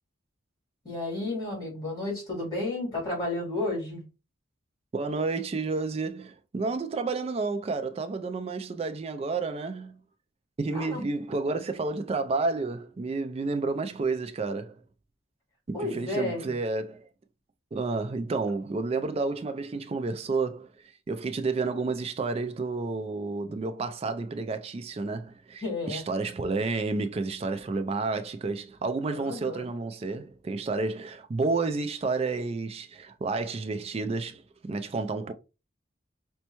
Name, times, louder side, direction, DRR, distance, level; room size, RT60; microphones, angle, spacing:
voice 1, 0.8-4.0 10.7-11.1 15.7-16.5 25.6-26.0 29.1-29.7, left 2 dB, 20° left, 2.3 m, -32 dB
voice 2, 4.9-10.0 10.6-14.8 15.7-17.1 17.7-35.3, right 3 dB, 30° right, 0.3 m, -30 dB
5.2 x 2.2 x 2.9 m
head